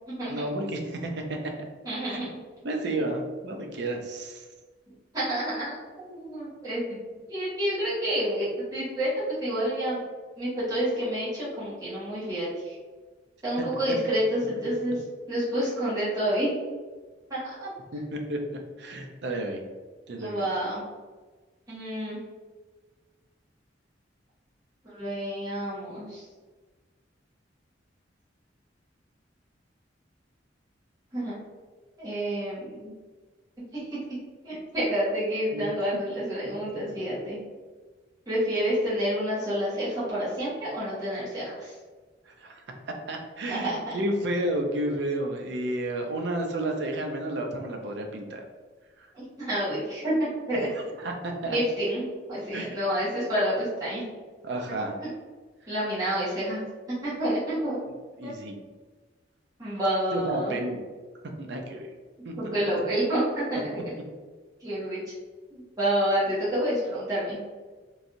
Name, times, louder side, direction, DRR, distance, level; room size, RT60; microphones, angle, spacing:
voice 1, 0.3-1.5 2.1-2.3 2.6-4.4 17.9-18.4 18.8-19.6 20.1-20.5 35.5-35.6 42.3-42.6 43.1-48.4 49.0-49.1 51.0-51.6 52.5-52.8 54.4-54.9 58.2-58.6 60.1-60.8 61.4-61.9 62.2-62.6, right 1 dB, 65° right, 3 dB, 0.5 m, -31 dB
voice 2, 1.8-2.7 5.1-7.0 7.3-9.1 9.4-10.0 10.4-12.8 13.4-15.0 15.3-16.5 17.3-17.7 20.2-20.8 21.7-22.2 24.8-26.2 31.1-31.3 32.0-32.9 33.7-34.0 34.4-37.4 38.3-41.7 43.5-43.8 49.1-50.7 51.4-54.0 55.0-55.1 55.7-56.6 56.9-57.8 58.2-58.3 59.6-60.6 62.4-63.8 64.6-65.1 65.5-67.4, right 1 dB, 20° right, -11 dB, 1.3 m, -29 dB
3.1 x 2.6 x 2.5 m, 1.4 s
head